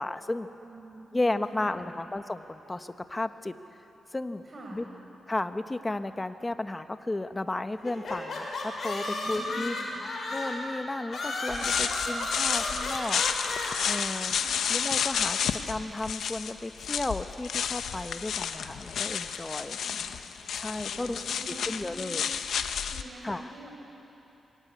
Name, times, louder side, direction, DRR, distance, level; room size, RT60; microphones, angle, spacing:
voice 1, 0.0-0.5 1.1-3.5 4.1-4.4 4.7-4.8 5.3-9.8 10.3-13.2 13.8-14.4 14.7-19.8 20.6-21.2 21.7-22.3 23.2-23.5, left 2 dB, 20° left, 9 dB, 1.2 m, -33 dB
voice 2, 0.6-1.9 4.4-4.9 9.0-10.0 11.4-11.7 14.3-14.6 19.8-20.1 20.8-22.1 22.9-23.8, right 2 dB, 35° right, -1 dB, 6.0 m, -46 dB
sound 1, 7.8-10.7 11.1-13.7, left 2 dB, 55° left, 6.2 m, -33 dB
sound 2, 11.5-23.0, left 7 dB, 85° left, 1.0 m, -31 dB
26.0 x 22.5 x 9.5 m, 3.0 s
cardioid pair, 90°, 0 cm